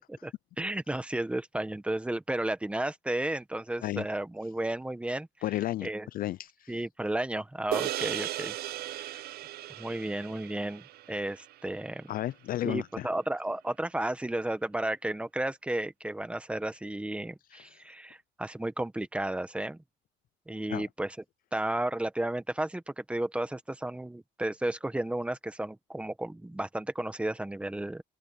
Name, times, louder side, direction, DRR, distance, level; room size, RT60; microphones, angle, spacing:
voice 1, 0.1-5.3 5.8-6.1 6.7-8.5 9.8-12.1 12.6-19.8 20.5-21.2 21.5-28.0, right 1 dB, 5° right, 1.1 m, -33 dB
voice 2, 5.4-6.7 8.9-9.2 12.1-13.1 20.7-20.8, left 14 dB, 45° left, 0.4 m, -33 dB
sound 1, 7.7-12.3, right 14 dB, 50° right, 0.5 m, -37 dB
open air
cardioid pair, 160°, 20 cm